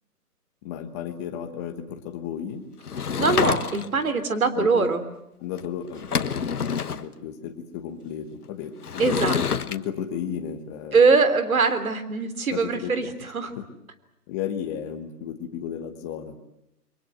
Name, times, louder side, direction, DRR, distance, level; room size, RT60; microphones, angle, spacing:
voice 1, 0.6-2.6 4.5-4.9 5.4-9.2 9.6-11.0 12.5-13.1 13.6-13.7 14.3-16.4, left 9 dB, 10° left, 6 dB, 1.2 m, -34 dB
Sliding door / Wood, 2.8-4.1 5.6-5.7 5.9-7.0 8.8-9.8, left 6 dB, 70° left, 1.4 m, -27 dB
voice 2, 3.2-5.0 9.0-9.4 10.9-13.5, right 4 dB, 60° right, 11 dB, 3.6 m, -22 dB
29.0 x 24.0 x 7.9 m, 0.83 s
hypercardioid pair, 160°, 47 cm